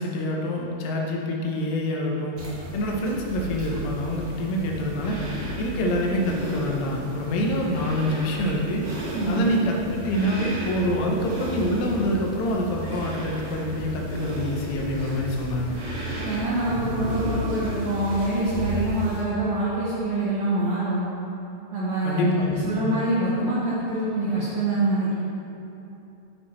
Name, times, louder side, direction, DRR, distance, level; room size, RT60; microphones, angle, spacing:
voice 1, 0.0-2.4 2.7-5.2 5.6-8.8 9.3-15.8 22.0-22.8, left 1 dB, 80° left, 0 dB, 3.1 m, -26 dB
sound 1, 2.4-19.2, right 1 dB, 55° right, 1.3 m, -33 dB
voice 2, 9.1-9.5 16.2-21.1 21.7-25.2, right 1 dB, 85° right, -8 dB, 1.6 m, -25 dB
9.0 x 7.4 x 3.2 m, 2.8 s
omnidirectional pair, 4.8 m